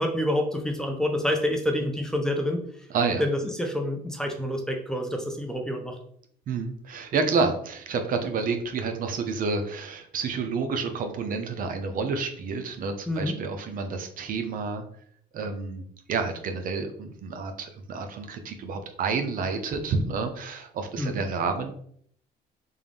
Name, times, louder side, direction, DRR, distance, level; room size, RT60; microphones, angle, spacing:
voice 1, 0.0-2.7 3.2-6.0 13.1-13.4 21.0-21.2, left 1 dB, 5° left, 2 dB, 0.6 m, -27 dB
voice 2, 2.9-3.2 6.5-14.8 15.3-15.8 16.1-21.7, right 4 dB, 55° right, 6 dB, 0.6 m, -29 dB
3.6 x 2.5 x 3.4 m, 0.62 s
cardioid pair, 110°, 17 cm